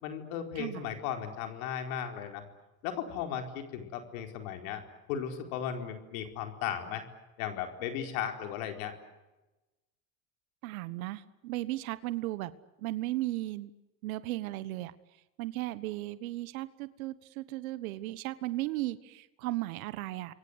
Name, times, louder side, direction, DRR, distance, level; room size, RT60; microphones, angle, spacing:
voice 1, 0.0-2.4 2.8-4.8 5.1-7.0 7.4-8.9, left 9 dB, 80° left, 5 dB, 4.6 m, -36 dB
voice 2, 10.6-12.5 12.8-13.7 14.0-14.9 15.4-20.3, right 17 dB, 85° right, 15 dB, 1.4 m, -36 dB
28.5 x 23.5 x 8.2 m, 1.1 s
supercardioid pair, 90°, 41 cm